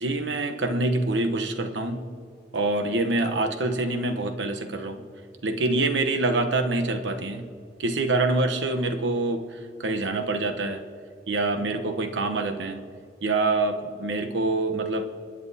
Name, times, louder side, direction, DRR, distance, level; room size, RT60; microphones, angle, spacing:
voice 1, 0.0-2.1 2.5-5.1 5.4-7.5 7.8-10.9 11.3-12.8 13.2-15.1, right 2 dB, 85° right, 7 dB, 0.9 m, -26 dB
25.5 x 9.6 x 2.7 m, 2.3 s
head